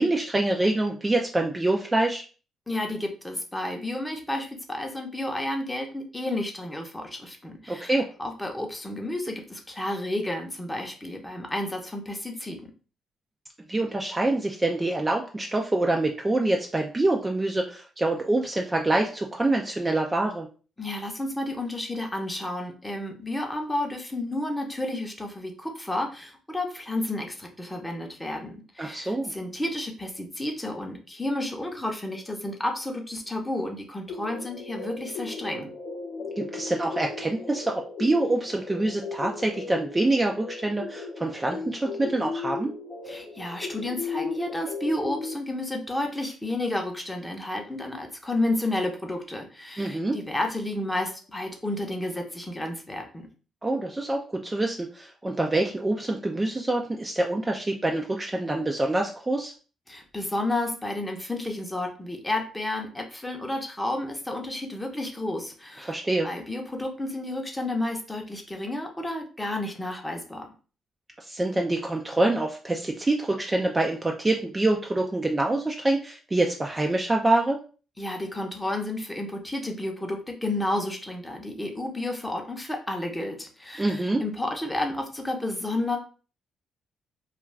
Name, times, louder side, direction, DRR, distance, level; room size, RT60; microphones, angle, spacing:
voice 1, 0.0-2.2 7.7-8.1 13.7-20.5 28.8-29.3 36.4-42.7 49.8-50.2 53.6-59.5 65.8-66.3 71.2-77.6 83.8-84.2, right 2 dB, 20° right, 1 dB, 0.4 m, -26 dB
voice 2, 2.7-7.9 8.2-12.7 20.8-35.7 43.1-53.3 59.9-70.5 78.0-86.0, left 1 dB, 10° left, 3 dB, 0.7 m, -31 dB
sound 1, 34.1-45.3, left 4 dB, 60° left, 0.6 m, -36 dB
2.3 x 2.2 x 3.2 m, 0.37 s
cardioid pair, 90°, 0 cm